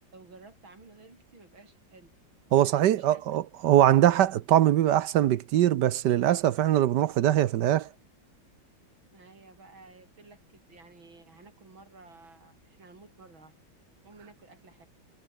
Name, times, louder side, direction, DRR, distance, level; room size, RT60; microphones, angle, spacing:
voice 1, 0.1-2.1 2.6-3.2 9.1-13.5 14.0-14.9, right 3 dB, 90° right, 5.8 m, -53 dB
voice 2, 2.5-7.9, right 12 dB, 70° right, 1.3 m, -22 dB
omnidirectional pair, 2.1 m